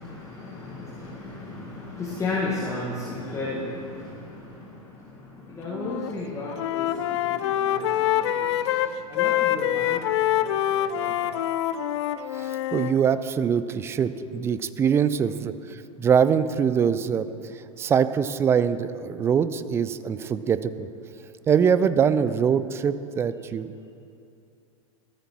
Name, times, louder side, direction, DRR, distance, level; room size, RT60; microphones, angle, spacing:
voice 1, 0.0-11.4 14.2-14.3, left 2 dB, 15° left, -6 dB, 1.6 m, -35 dB
Wind instrument woodwind instrument, 5.7-6.1 6.4-13.0, left 12 dB, 50° left, 0.5 m, -25 dB
voice 2, 12.3-17.3 17.8-20.9 21.5-23.7, right 7 dB, 15° right, 14 dB, 0.3 m, -23 dB
15.0 x 13.5 x 3.0 m, 2.5 s
figure-of-eight pair, 95°, 19 cm